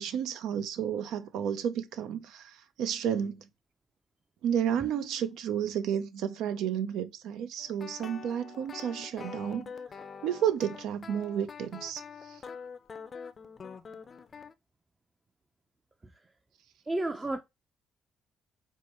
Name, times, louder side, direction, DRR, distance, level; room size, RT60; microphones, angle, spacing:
voice 1, 0.0-3.5 4.4-9.7 10.2-12.4, right 9 dB, 90° right, 0.5 m, -32 dB
sound 1, 7.6-14.5, left 6 dB, 40° left, 0.5 m, -45 dB
voice 2, 16.9-17.4, right 2 dB, 25° right, 0.5 m, -31 dB
4.7 x 2.1 x 4.2 m
cardioid pair, 90°, 0 cm